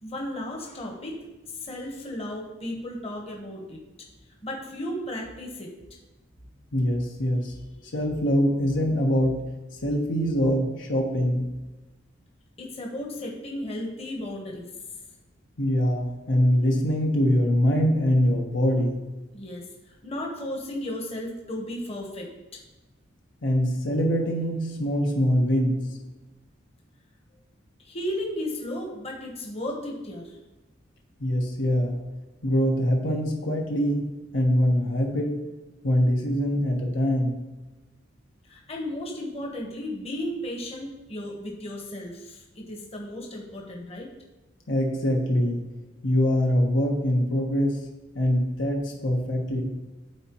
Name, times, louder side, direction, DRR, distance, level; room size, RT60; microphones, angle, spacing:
voice 1, 0.0-3.8 4.4-5.7 12.6-14.7 19.3-22.3 27.8-30.4 38.5-44.1, left 1 dB, 35° left, 0 dB, 1.2 m, -34 dB
voice 2, 6.7-7.6 7.9-9.5 9.8-11.5 15.6-19.0 23.4-26.0 31.2-32.0 32.4-34.1 34.3-35.3 35.8-37.4 44.7-45.6 46.0-47.8 48.1-49.6, equal, 75° left, 0 dB, 1.2 m, -23 dB
12.5 x 4.2 x 3.0 m, 1.1 s
head